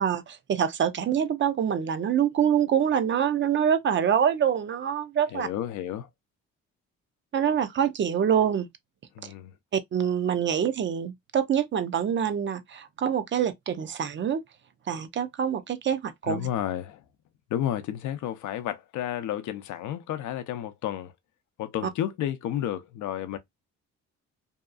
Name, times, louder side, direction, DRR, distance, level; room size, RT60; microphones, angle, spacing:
voice 1, 0.0-5.5 7.3-8.7 9.2-9.3 9.7-14.4 14.9-16.4, right 8 dB, 40° right, 0.5 m, -25 dB
voice 2, 5.3-6.1 9.2-9.5 16.3-17.0 17.5-21.1 21.6-23.4, left 11 dB, 75° left, 0.5 m, -31 dB
2.7 x 2.3 x 2.3 m
cardioid pair, 90°, 30 cm